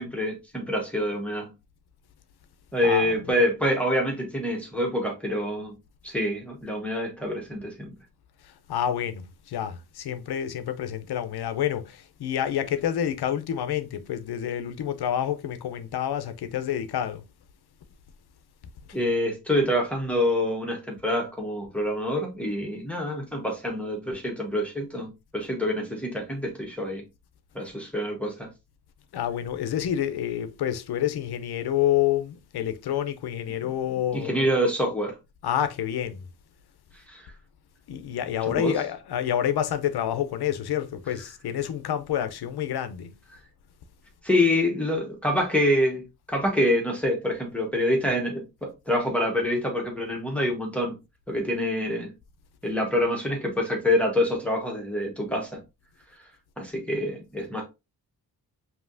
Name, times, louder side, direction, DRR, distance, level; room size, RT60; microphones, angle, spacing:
voice 1, 0.0-1.5 2.7-5.7 6.0-7.9 18.9-27.0 27.5-28.5 34.1-35.2 37.1-37.3 38.5-38.8 44.2-50.9 51.3-52.1 52.6-55.6 56.6-57.6, left 1 dB, 5° left, 1.1 m, -26 dB
voice 2, 2.8-3.4 8.4-17.2 29.1-34.5 35.4-36.2 37.9-43.2, left 10 dB, 80° left, 0.6 m, -28 dB
5.4 x 2.8 x 2.5 m
wide cardioid pair, 125°, 38 cm